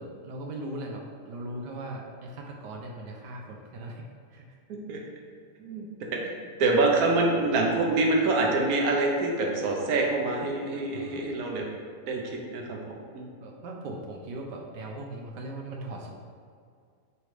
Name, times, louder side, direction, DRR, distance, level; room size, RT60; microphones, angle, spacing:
voice 1, 0.0-4.0 4.3-4.5 10.9-11.3 13.4-16.1, right 1 dB, 85° right, 0 dB, 1.4 m, -39 dB
voice 2, 4.7-5.0 5.6-11.7 12.1-13.3, right 2 dB, 65° right, 0 dB, 1.4 m, -26 dB
7.9 x 3.3 x 4.8 m, 2.2 s
omnidirectional pair, 1.8 m